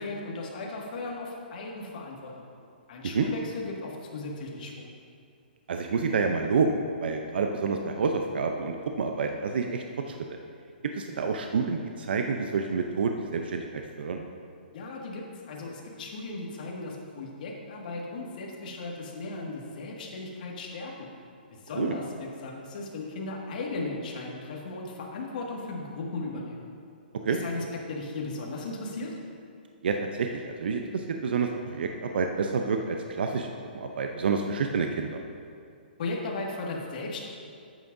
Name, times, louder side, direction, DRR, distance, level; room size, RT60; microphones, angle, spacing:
voice 1, 0.0-2.5 2.9-4.9 14.7-21.1 21.5-26.6 27.3-29.2 36.0-37.2, left 3 dB, 55° left, -2 dB, 1.9 m, -36 dB
voice 2, 5.7-10.1 11.0-13.7 14.0-14.2 21.8-21.9 27.2-27.4 29.8-35.2, right 5 dB, 70° right, 4 dB, 0.6 m, -28 dB
12.5 x 9.0 x 2.7 m, 2.4 s
hypercardioid pair, 155°, 6 cm